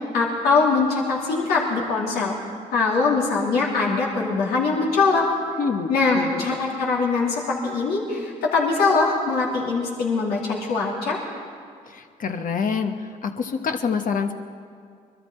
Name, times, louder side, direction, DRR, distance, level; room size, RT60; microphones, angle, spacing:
voice 1, 0.1-2.3 2.7-5.3 5.9-11.2, left 4 dB, 80° left, -3 dB, 2.7 m, -22 dB
voice 2, 5.6-6.6 11.9-14.3, left 5 dB, 60° left, 6 dB, 1.2 m, -27 dB
22.5 x 13.5 x 4.4 m, 2.2 s
supercardioid pair, 50°, 16 cm